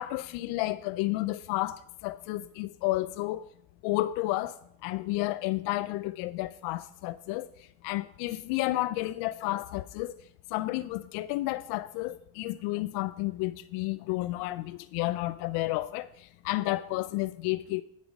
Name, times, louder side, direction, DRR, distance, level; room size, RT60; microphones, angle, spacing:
voice 1, 0.0-3.5 3.8-4.5 4.8-7.5 7.8-10.2 10.5-17.8, left 18 dB, 75° left, 0.5 m, -31 dB
9.7 x 7.7 x 5.2 m
supercardioid pair, 100°, 39 cm